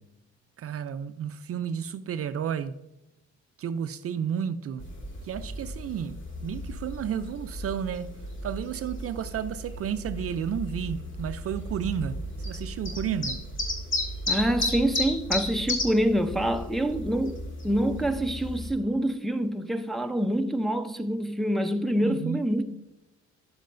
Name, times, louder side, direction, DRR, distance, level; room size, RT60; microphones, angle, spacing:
voice 1, 0.6-2.7 3.6-4.8 5.2-8.1 8.4-12.2 12.4-13.4 22.0-22.4, right 8 dB, 50° right, 0.4 m, -32 dB
sound 1, 4.8-18.7, left 1 dB, 40° left, 1.9 m, -34 dB
voice 2, 14.3-22.6, right 1 dB, ahead, 0.6 m, -26 dB
9.4 x 7.4 x 2.6 m
cardioid pair, 90°, 30 cm